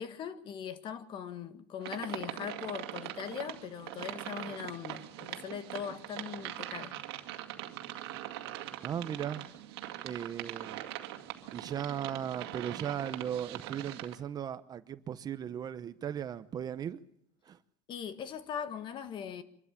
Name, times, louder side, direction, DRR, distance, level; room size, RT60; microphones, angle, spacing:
voice 1, 0.0-6.9 17.9-19.4, left 7 dB, 40° left, 1.6 m, -40 dB
sound 1, 1.8-14.2, right 13 dB, 90° right, 2.2 m, -42 dB
voice 2, 8.8-9.4 10.0-10.8 11.5-17.0 17.5-17.6, right 9 dB, 30° right, 0.9 m, -37 dB
25.0 x 13.0 x 8.9 m
supercardioid pair, 130°, 13 cm